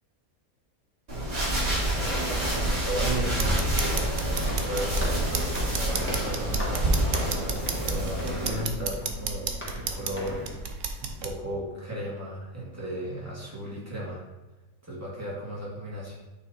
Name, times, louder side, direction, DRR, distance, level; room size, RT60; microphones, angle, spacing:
sound 1, 1.1-8.6, right 1 dB, 50° right, 2.6 m, -28 dB
voice 1, 1.9-10.6 11.0-14.2 14.8-16.2, equal, 10° right, -6 dB, 2.1 m, -35 dB
Walk footsteps, 2.6-10.6, left 1 dB, 10° left, 1.1 m, -41 dB
sound 2, 3.3-11.3, right 5 dB, 65° right, 1.0 m, -33 dB
8.9 x 3.3 x 4.1 m, 1.1 s
omnidirectional pair, 1.5 m